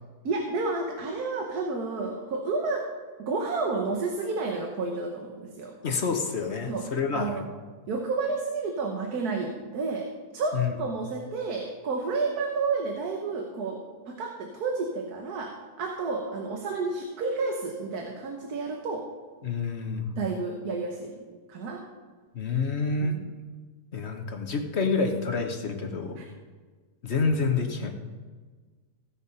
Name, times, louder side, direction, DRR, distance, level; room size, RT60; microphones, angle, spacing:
voice 1, 0.2-2.9 3.2-5.7 6.7-6.8 7.1-7.4 7.9-10.1 10.3-19.0 20.2-21.1 21.5-21.9 23.0-23.3 26.2-26.3, right 3 dB, 90° right, 2 dB, 1.6 m, -31 dB
voice 2, 5.8-7.4 10.5-10.8 19.4-20.1 22.3-23.2 23.9-26.2 27.0-27.9, left 4 dB, 50° left, 5 dB, 1.1 m, -28 dB
16.5 x 5.6 x 5.4 m, 1.4 s
omnidirectional pair, 1.6 m